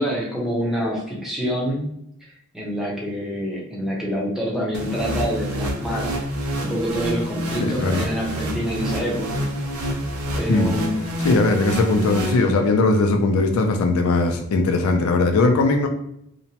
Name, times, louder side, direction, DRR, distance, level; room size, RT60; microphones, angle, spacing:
voice 1, 0.0-1.9 2.2-6.1 6.6-9.4 10.4-11.1, equal, ahead, -4 dB, 0.7 m, -26 dB
sound 1, 4.7-12.9, equal, 90° right, 0.6 m, -27 dB
voice 2, 7.6-8.0 10.5-10.7 11.2-15.9, left 3 dB, 70° left, 4 dB, 0.4 m, -19 dB
2.9 x 2.1 x 2.8 m, 0.75 s
head